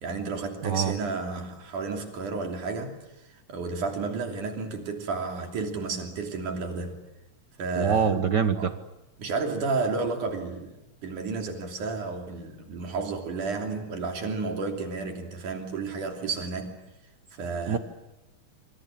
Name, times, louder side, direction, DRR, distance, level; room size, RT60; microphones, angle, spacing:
voice 1, 0.0-7.0 7.6-8.2 8.6-8.7 9.2-10.8 11.0-16.8 17.3-17.8, right 4 dB, 80° right, 4.6 m, -32 dB
voice 2, 0.6-0.9 7.8-8.7 17.7-17.8, right 6 dB, 60° right, 1.1 m, -24 dB
27.0 x 26.0 x 7.6 m
omnidirectional pair, 3.6 m